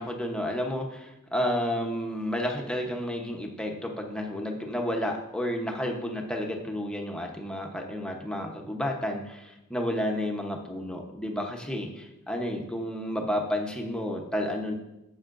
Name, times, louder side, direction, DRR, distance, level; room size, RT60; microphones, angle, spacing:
voice 1, 0.0-14.7, equal, 5° left, 1 dB, 0.9 m, -31 dB
11.0 x 7.7 x 2.6 m, 0.93 s
head